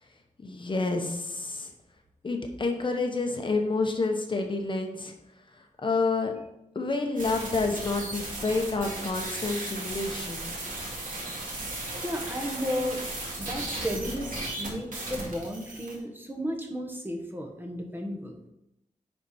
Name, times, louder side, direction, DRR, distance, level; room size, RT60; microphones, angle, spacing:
voice 1, 0.4-1.7 2.2-5.1 5.8-6.3 6.7-10.4, left 3 dB, 40° left, 3 dB, 1.0 m, -29 dB
sound 1, 7.2-16.0, right 2 dB, 85° right, 2.4 m, -36 dB
voice 2, 12.0-13.0 13.4-18.3, equal, 15° right, 1 dB, 1.0 m, -33 dB
10.0 x 4.4 x 4.3 m, 0.85 s
wide cardioid pair, 155°, 13 cm